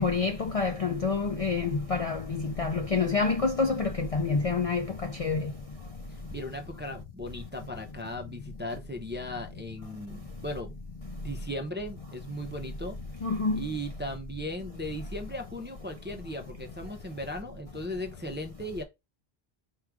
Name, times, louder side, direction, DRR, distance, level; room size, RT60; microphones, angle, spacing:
voice 1, 0.0-4.8 5.2-5.4 13.2-13.6, left 4 dB, 50° left, 0.4 m, -27 dB
voice 2, 6.1-10.7 11.2-13.0 13.5-18.8, equal, 15° right, 0.4 m, -37 dB
4.6 x 2.4 x 4.6 m
omnidirectional pair, 1.1 m